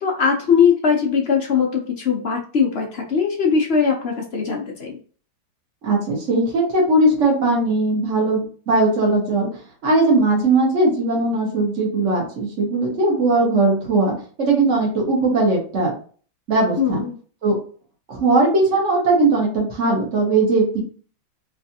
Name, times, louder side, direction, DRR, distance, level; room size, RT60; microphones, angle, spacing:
voice 1, 0.0-5.0 16.8-17.2, left 6 dB, 50° left, 0 dB, 0.8 m, -20 dB
voice 2, 5.8-9.5 9.8-15.9 16.5-17.0 17.4-17.5 18.1-20.8, right 2 dB, 40° right, -3 dB, 1.8 m, -19 dB
4.3 x 3.2 x 2.8 m, 0.41 s
omnidirectional pair, 2.0 m